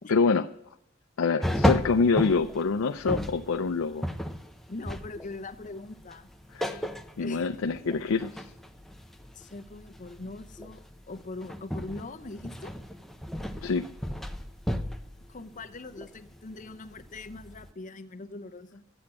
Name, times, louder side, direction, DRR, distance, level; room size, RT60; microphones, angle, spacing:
voice 1, 0.1-0.5 1.2-4.1 6.5-6.8 7.2-8.5 13.6-13.8, left 4 dB, 85° left, 7 dB, 0.5 m, -26 dB
sound 1, 1.4-17.7, equal, ahead, 0.6 m, -34 dB
voice 2, 4.7-6.3 7.2-7.5 9.3-12.7 15.3-18.8, left 2 dB, 40° left, 10 dB, 0.7 m, -41 dB
13.0 x 8.0 x 8.6 m, 0.79 s
head